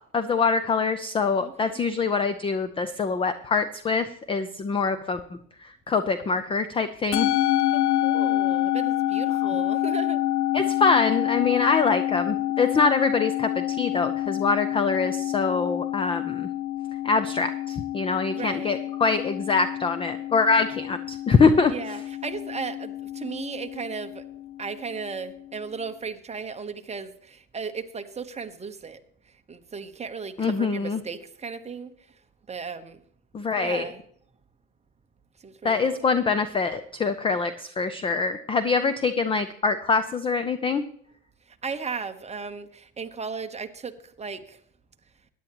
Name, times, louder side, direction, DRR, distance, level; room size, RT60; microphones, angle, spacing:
voice 1, 0.1-5.2 5.6-7.3 10.5-16.5 17.0-21.7 30.4-31.0 33.3-33.9 35.6-40.8, left 4 dB, 10° left, 0.4 m, -24 dB
voice 2, 1.4-1.8 7.7-10.2 18.3-18.8 21.7-24.2 24.6-29.0 29.5-31.9 32.5-33.0 33.6-34.0 35.4-36.2 41.5-44.6, right 5 dB, 15° right, 0.9 m, -36 dB
Musical instrument, 7.1-25.6, left 14 dB, 70° left, 1.1 m, -28 dB
16.5 x 10.5 x 3.0 m
hypercardioid pair, 100°, 46 cm